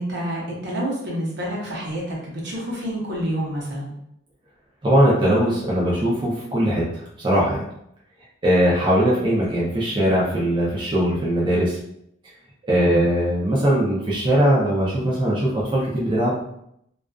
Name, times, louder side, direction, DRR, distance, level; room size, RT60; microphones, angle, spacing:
voice 1, 0.0-3.9 12.7-13.1, equal, 60° right, -4 dB, 0.8 m, -28 dB
voice 2, 4.8-7.6 8.4-11.8 12.7-16.4, equal, 25° right, -6 dB, 0.5 m, -20 dB
2.4 x 2.3 x 2.3 m, 0.75 s
head